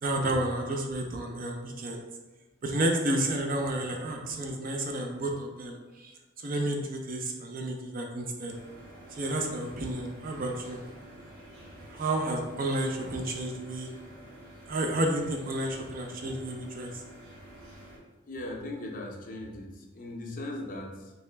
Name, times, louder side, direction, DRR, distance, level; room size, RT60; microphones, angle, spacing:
voice 1, 0.0-2.1 2.6-8.6 9.1-10.8 11.9-13.9 14.7-16.9, right 1 dB, 45° right, 2 dB, 0.5 m, -31 dB
sound 1, 8.5-18.0, right 1 dB, 85° right, 1.1 m, -49 dB
voice 2, 18.3-21.1, left 1 dB, 40° left, 1 dB, 0.5 m, -38 dB
3.1 x 2.8 x 3.3 m, 1.2 s
head